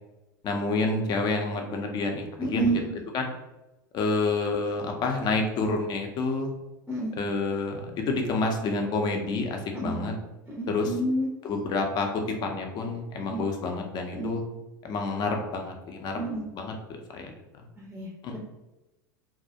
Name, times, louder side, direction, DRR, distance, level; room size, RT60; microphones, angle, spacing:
voice 1, 0.4-2.2 2.5-2.8 3.1-3.3 3.9-6.5 7.2-10.1 10.7-10.9 11.4-14.4 14.8-16.2 16.5-16.7 17.1-17.3 17.6-17.7 18.2-18.4, left 3 dB, 40° left, 3 dB, 0.5 m, -28 dB
voice 2, 2.4-2.9 6.9-7.1 9.7-10.0 10.5-11.3 13.3-13.4 14.1-14.3 16.1-16.4 17.8-18.4, right 2 dB, 10° right, -4 dB, 0.6 m, -29 dB
2.3 x 2.0 x 2.7 m, 1.0 s
hypercardioid pair, 90°, 11 cm